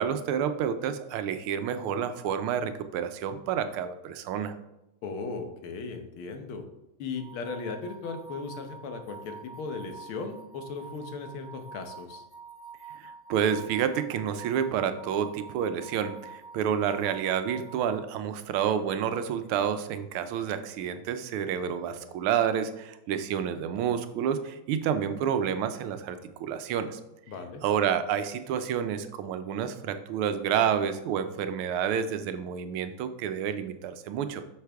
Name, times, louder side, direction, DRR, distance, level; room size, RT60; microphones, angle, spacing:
voice 1, 0.0-4.5 12.9-27.0 27.6-34.4, right 8 dB, 85° right, 10 dB, 1.6 m, -29 dB
voice 2, 5.0-6.7 7.0-12.2 27.3-27.6, left 4 dB, 80° left, 6 dB, 1.8 m, -37 dB
sound 1, 7.2-18.0, right 5 dB, 50° right, 0.8 m, -47 dB
8.0 x 6.5 x 3.4 m, 0.92 s
omnidirectional pair, 2.3 m